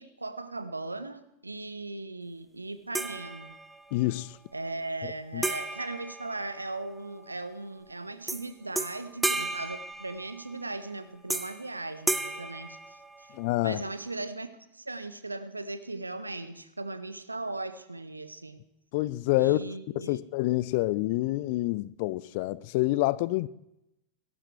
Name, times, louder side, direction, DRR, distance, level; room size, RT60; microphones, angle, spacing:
voice 1, 0.0-3.5 4.5-13.3 13.6-18.6 19.4-20.2, right 2 dB, 80° right, 0.7 m, -38 dB
sound 1, 2.9-3.9 5.4-7.0 8.3-8.5 8.8-10.6 11.3-11.7 12.1-13.5, right 2 dB, 10° right, 0.6 m, -33 dB
voice 2, 3.9-4.4 5.3-5.4 13.3-13.8 18.9-19.6 20.1-23.5, left 19 dB, 50° left, 0.4 m, -27 dB
17.5 x 13.5 x 3.3 m
figure-of-eight pair, 90°, 0 cm